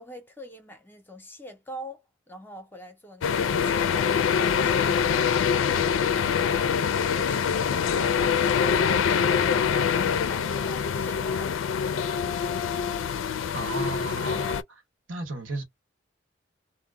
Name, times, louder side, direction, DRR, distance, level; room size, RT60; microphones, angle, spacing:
voice 1, 0.0-11.8, equal, 10° left, 0.5 m, -45 dB
sound 1, 3.2-14.6, left 7 dB, 85° left, 0.4 m, -24 dB
voice 2, 13.5-14.8 15.1-15.6, right 2 dB, 90° right, 1.1 m, -34 dB
2.1 x 2.1 x 3.5 m
head